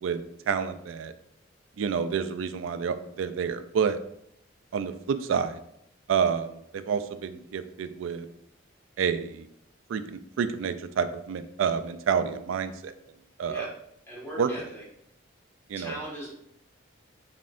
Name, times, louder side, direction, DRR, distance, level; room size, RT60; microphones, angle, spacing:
voice 1, 0.0-1.1 1.8-4.0 4.7-5.6 6.1-8.3 9.0-9.5 9.9-12.9 13.4-13.7 14.4-14.5 15.7-16.0, right 6 dB, 75° right, 11 dB, 0.3 m, -29 dB
voice 2, 14.1-14.8 15.7-16.3, right 1 dB, 10° left, -6 dB, 1.5 m, -39 dB
4.1 x 3.7 x 2.5 m, 0.76 s
head